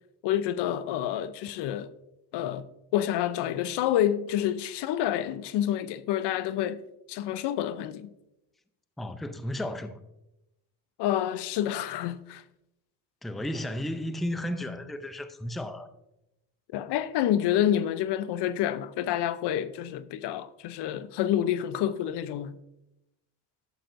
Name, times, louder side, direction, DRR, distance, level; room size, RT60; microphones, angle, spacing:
voice 1, 0.2-1.9 2.3-2.7 2.9-6.8 7.1-8.1 11.0-12.4 16.7-22.6, left 11 dB, 75° left, 0.6 m, -28 dB
voice 2, 9.0-10.0 13.2-15.9, left 1 dB, ahead, 0.4 m, -33 dB
11.5 x 7.5 x 2.6 m
cardioid pair, 105°, 42 cm